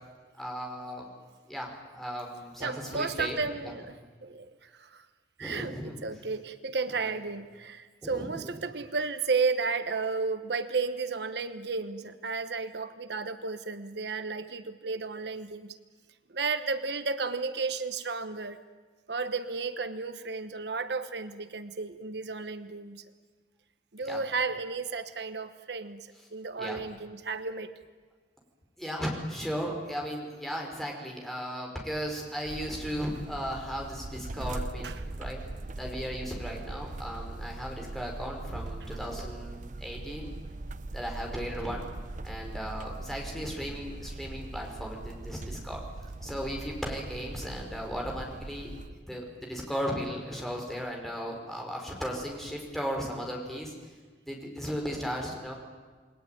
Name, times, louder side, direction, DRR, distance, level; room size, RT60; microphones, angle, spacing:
voice 1, 0.4-1.1 1.5-3.8 5.4-6.2 6.9-7.2 8.0-8.5 24.0-24.2 26.6-26.8 28.8-35.4 35.8-40.3 40.9-41.9 42.2-45.8 46.2-48.8 49.1-53.7 54.3-55.5, equal, ahead, 0 dB, 5.2 m, -36 dB
voice 2, 2.6-4.0 4.2-5.0 5.4-15.8 16.3-18.6 19.1-23.0 23.9-27.7 34.8-35.0 38.5-38.6 41.3-41.8, right 4 dB, 70° right, 10 dB, 1.1 m, -33 dB
sound 1, 32.5-48.9, right 2 dB, 45° right, 0.8 m, -40 dB
29.0 x 21.0 x 9.3 m, 1.5 s
head